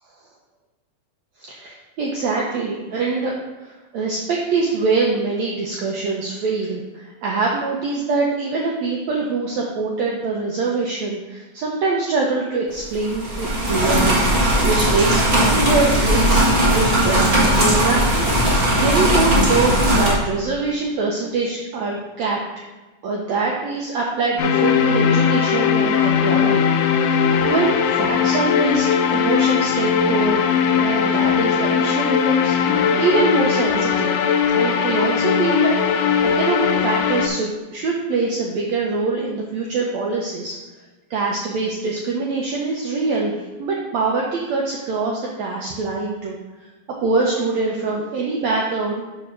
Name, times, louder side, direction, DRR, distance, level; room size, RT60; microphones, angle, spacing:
voice 1, 1.4-14.2 14.6-16.5 16.7-22.4 23.0-27.2 27.4-30.5 30.8-34.1 34.5-40.6 41.1-46.4 47.0-49.0, right 3 dB, 90° right, -2 dB, 1.5 m, -24 dB
sound 1, 12.9-20.1, right 1 dB, 50° right, 0.7 m, -18 dB
sound 2, 24.4-37.3, left 7 dB, 80° left, 2.1 m, -19 dB
5.1 x 4.8 x 5.9 m, 1.2 s
omnidirectional pair, 4.1 m